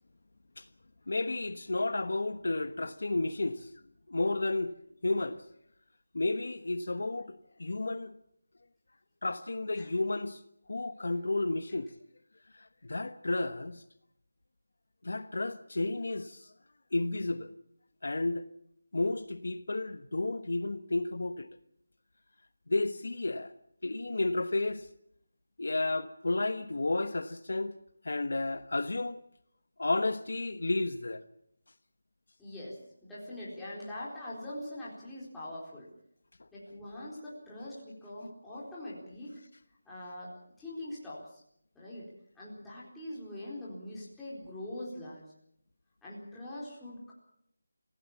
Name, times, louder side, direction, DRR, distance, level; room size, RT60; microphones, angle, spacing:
voice 1, 1.1-3.7 4.1-4.7 5.0-5.4 6.1-8.2 9.2-10.4 10.7-11.9 12.6-13.8 15.0-16.5 16.9-17.5 18.0-18.4 18.9-21.5 22.7-23.5 23.8-24.9 25.6-27.7 28.0-29.2 29.8-31.2, left 2 dB, 65° left, 1.2 m, -32 dB
voice 2, 32.4-35.9 36.5-39.4 39.9-41.4 41.7-45.2 46.0-47.1, left 1 dB, 5° left, 4.3 m, -43 dB
26.0 x 16.5 x 7.2 m
figure-of-eight pair, 175°, 0 cm